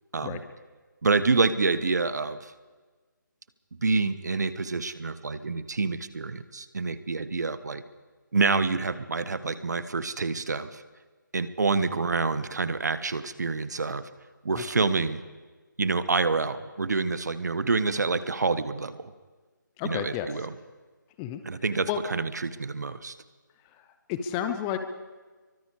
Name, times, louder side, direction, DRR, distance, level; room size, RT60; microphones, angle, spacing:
voice 1, 1.0-2.5 3.8-7.8 8.3-10.8 11.3-14.0 14.4-15.2 15.8-19.1 19.8-20.5 21.4-23.1, right 4 dB, 55° right, 13 dB, 1.4 m, -27 dB
voice 2, 14.6-14.9 19.8-20.3 21.2-21.4 21.9-22.0 24.1-24.8, left 10 dB, 10° left, 9 dB, 0.7 m, -31 dB
28.0 x 24.0 x 5.0 m, 1.4 s
figure-of-eight pair, 155°, 11 cm